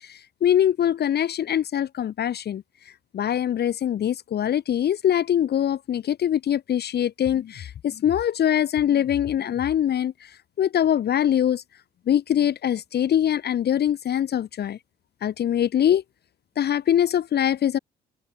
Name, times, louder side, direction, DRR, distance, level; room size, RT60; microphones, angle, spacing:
voice 1, 0.1-2.6 3.1-10.1 10.6-11.6 12.1-14.8 15.2-16.0 16.6-17.8, left 10 dB, 55° left, 0.8 m, -23 dB
cardioid pair, 90°, 20 cm